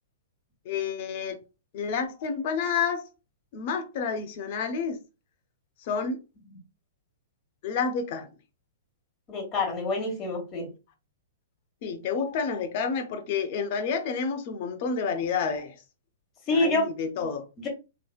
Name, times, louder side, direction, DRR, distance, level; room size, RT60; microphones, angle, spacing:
voice 1, 0.6-1.4 1.7-3.0 3.5-5.0 5.8-6.2 7.6-8.3 11.8-15.8 16.5-17.5, left 5 dB, 50° left, 0.8 m, -29 dB
voice 2, 9.3-10.7 16.5-16.9 17.6-17.7, left 2 dB, 30° left, 1.9 m, -27 dB
3.7 x 3.0 x 2.3 m
hypercardioid pair, 120°, 0 cm